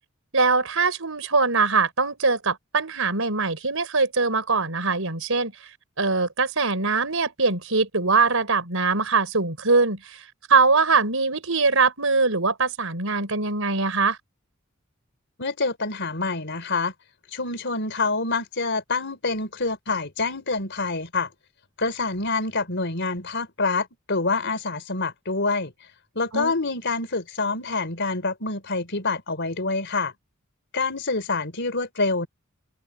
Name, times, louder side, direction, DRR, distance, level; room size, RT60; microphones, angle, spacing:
voice 1, 0.3-5.5 6.0-10.2 10.5-14.2 26.3-26.5, right 4 dB, 70° right, 5.5 m, -22 dB
voice 2, 15.4-16.9 17.3-21.3 21.8-25.7 26.1-30.1 30.7-32.3, left 3 dB, 55° left, 4.2 m, -26 dB
head